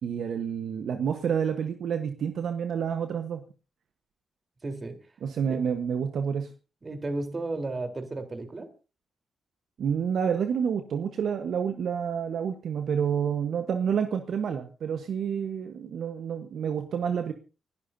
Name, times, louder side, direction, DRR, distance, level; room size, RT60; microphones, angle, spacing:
voice 1, 0.0-3.4 5.2-6.5 9.8-17.3, right 7 dB, 70° right, 7 dB, 1.1 m, -29 dB
voice 2, 4.6-5.0 5.5-5.6 6.8-8.7, right 2 dB, 40° right, 6 dB, 3.7 m, -33 dB
29.0 x 12.0 x 2.7 m, 0.34 s
hypercardioid pair, 45°, 0 cm